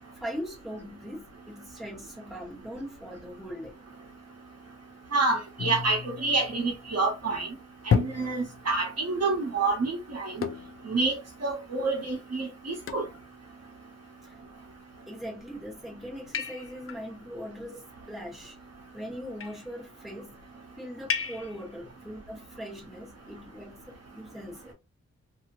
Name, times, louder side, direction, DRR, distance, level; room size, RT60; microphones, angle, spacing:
voice 1, 0.2-3.8 14.2-14.4 15.1-18.6 18.9-20.3 20.8-24.7, equal, ahead, 1.5 m, -40 dB
voice 2, 5.1-7.5 7.8-10.4 10.8-13.0, right 3 dB, 55° right, 1.1 m, -28 dB
sound 1, 5.6-7.0 7.9-8.9 10.4-10.9 11.5-11.6 12.1-12.2 12.9-13.2 14.3-14.8 15.4-15.8 16.3-17.0 18.2-18.8 19.2-19.7 21.1-21.7, left 6 dB, 50° left, 0.4 m, -32 dB
2.8 x 2.7 x 2.7 m
wide cardioid pair, 105°, 29 cm